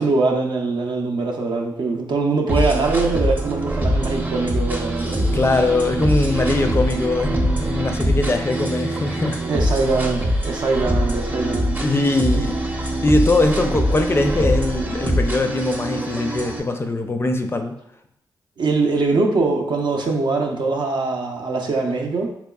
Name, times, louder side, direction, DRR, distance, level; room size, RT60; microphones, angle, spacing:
voice 1, 0.0-5.4 9.5-11.8 12.3-12.4 18.6-22.3, right 3 dB, 65° right, 2 dB, 0.6 m, -22 dB
sound 1, 2.5-16.6, equal, 20° right, 0.6 m, -23 dB
voice 2, 5.3-9.4 11.8-12.5 13.0-17.7, left 2 dB, 30° left, 6 dB, 0.4 m, -21 dB
3.5 x 2.9 x 2.3 m, 0.75 s
cardioid pair, 60°, 8 cm